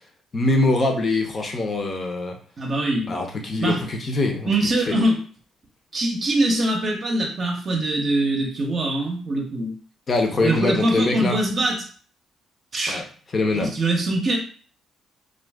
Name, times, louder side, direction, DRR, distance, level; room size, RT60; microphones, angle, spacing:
voice 1, 0.3-2.4 3.1-4.5 4.9-5.0 10.1-11.4 12.9-13.0 13.3-13.7, left 2 dB, 40° left, 3 dB, 0.7 m, -23 dB
voice 2, 2.6-3.1 3.6-3.8 4.4-5.2 5.9-9.7 10.4-11.8 12.7-13.0 13.5-14.4, right 1 dB, 45° right, 0 dB, 0.7 m, -23 dB
2.5 x 2.3 x 3.4 m, 0.42 s
cardioid pair, 90°, 0 cm